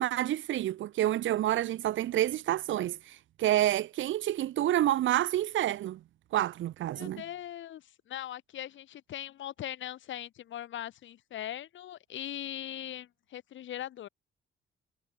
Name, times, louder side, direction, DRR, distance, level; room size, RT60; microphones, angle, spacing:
voice 1, 0.0-6.0 6.3-7.2, right 13 dB, 75° right, 1.4 m, -28 dB
voice 2, 6.9-14.1, left 12 dB, 70° left, 3.0 m, -40 dB
cardioid pair, 90°, 20 cm